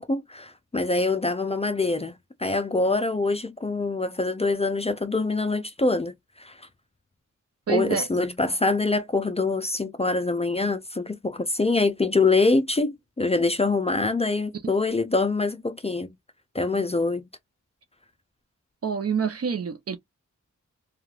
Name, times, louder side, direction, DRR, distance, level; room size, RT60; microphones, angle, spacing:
voice 1, 0.0-6.6 7.7-16.1 16.5-17.3, left 3 dB, 20° left, 0.5 m, -25 dB
voice 2, 7.7-8.2 14.6-14.7 18.8-20.0, right 6 dB, 50° right, 0.6 m, -27 dB
3.0 x 2.4 x 2.3 m
wide cardioid pair, 80°, 31 cm